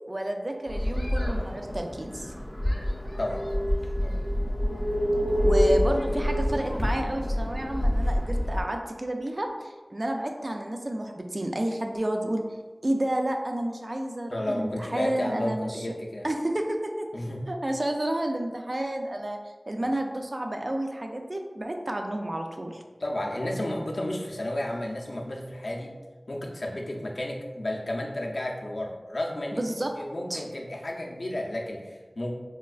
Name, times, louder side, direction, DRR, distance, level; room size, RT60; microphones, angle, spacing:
voice 1, 0.1-2.3 5.4-12.4 12.8-15.9 16.2-17.1 17.5-19.4 19.7-22.7 29.5-30.0 30.3-30.4, right 1 dB, 50° right, 3 dB, 0.3 m, -30 dB
sound 1, 0.7-8.6, equal, 25° left, 0.6 m, -27 dB
voice 2, 14.3-16.3 17.1-17.5 23.0-25.9 26.3-29.6 30.0-32.3, left 1 dB, 70° left, -1 dB, 0.5 m, -32 dB
4.2 x 2.2 x 2.3 m, 1.3 s
wide cardioid pair, 45°, 0 cm